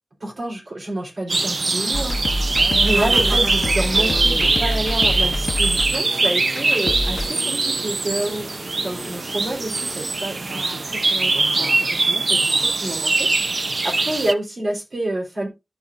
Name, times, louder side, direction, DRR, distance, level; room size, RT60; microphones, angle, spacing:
voice 1, 0.2-2.2 2.7-13.5 13.8-15.5, right 1 dB, 90° right, 3.9 m, -28 dB
sound 1, 1.3-14.3, right 3 dB, 70° right, 0.6 m, -22 dB
sound 2, 1.9-7.2, left 1 dB, 90° left, 0.9 m, -26 dB
sound 3, 2.5-10.2, left 1 dB, 10° left, 0.9 m, -37 dB
14.0 x 5.2 x 2.6 m
wide cardioid pair, 75°, 0 cm